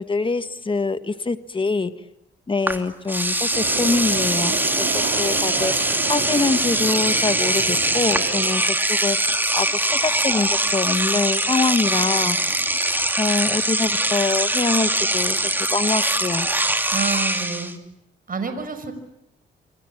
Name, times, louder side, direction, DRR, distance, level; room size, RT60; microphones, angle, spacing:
voice 1, 0.0-1.9 2.5-12.4 13.2-16.5, left 3 dB, 25° left, 11 dB, 1.5 m, -25 dB
Engine / Domestic sounds home sounds, 2.7-2.8 3.1-17.7, right 1 dB, 10° right, 2.7 m, -22 dB
sound 1, 3.5-8.7, right 6 dB, 85° right, 6.1 m, -31 dB
voice 2, 16.9-17.7 18.3-18.9, right 5 dB, 45° right, 9 dB, 5.7 m, -28 dB
26.5 x 25.5 x 8.7 m, 0.82 s
cardioid pair, 90°, 20 cm